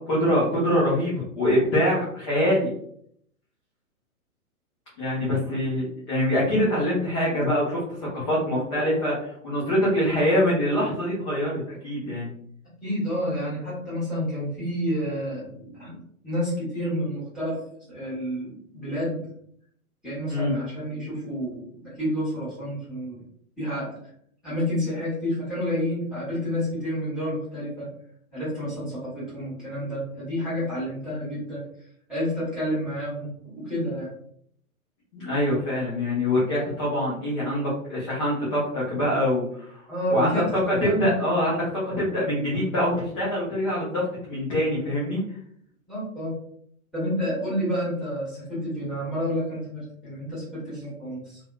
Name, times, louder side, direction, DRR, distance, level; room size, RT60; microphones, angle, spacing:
voice 1, 0.0-2.7 5.0-7.8 8.1-12.3 20.3-20.5 35.1-39.8 40.1-45.2, left 1 dB, 20° left, -8 dB, 0.6 m, -24 dB
voice 2, 12.8-17.6 17.9-19.3 20.0-23.2 23.6-24.0 24.4-27.9 28.3-31.6 32.1-34.1 39.9-41.1 45.9-46.3 46.9-51.4, equal, ahead, -10 dB, 1.2 m, -29 dB
2.7 x 2.2 x 2.2 m, 0.67 s
figure-of-eight pair, 115°, 44 cm